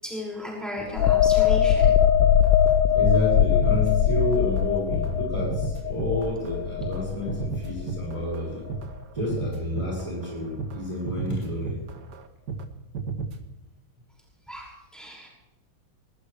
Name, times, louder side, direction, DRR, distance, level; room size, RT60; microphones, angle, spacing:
voice 1, 0.0-1.9 2.3-2.7 3.7-3.8 14.5-15.3, left 1 dB, ahead, -4 dB, 6.0 m, -35 dB
sound 1, 1.0-8.4 8.8-9.0, left 9 dB, 75° left, 1.4 m, -21 dB
sound 2, 2.2-2.8 3.0-3.2 3.5-4.7 4.9-12.7 12.9-13.4, right 4 dB, 55° right, 1.8 m, -33 dB
voice 2, 2.7-8.6 9.1-11.8, left 1 dB, 15° right, -4 dB, 5.7 m, -30 dB
21.0 x 19.5 x 3.4 m, 0.98 s
omnidirectional pair, 2.2 m